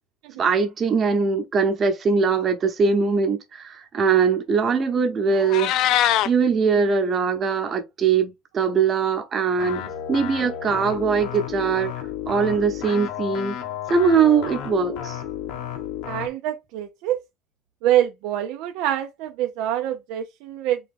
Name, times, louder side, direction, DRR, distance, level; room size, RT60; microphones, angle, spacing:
voice 1, 0.4-5.8 6.2-9.8 10.1-11.9 12.3-13.6 13.9-15.2, right 5 dB, 30° right, 1.0 m, -21 dB
Meow, 5.3-6.3, left 12 dB, 55° left, 0.4 m, -21 dB
sound 1, 9.6-16.3, left 9 dB, 70° left, 1.1 m, -32 dB
voice 2, 16.0-17.2 17.8-20.8, right 12 dB, 65° right, 0.5 m, -25 dB
3.8 x 3.0 x 3.6 m
cardioid pair, 155°, 0 cm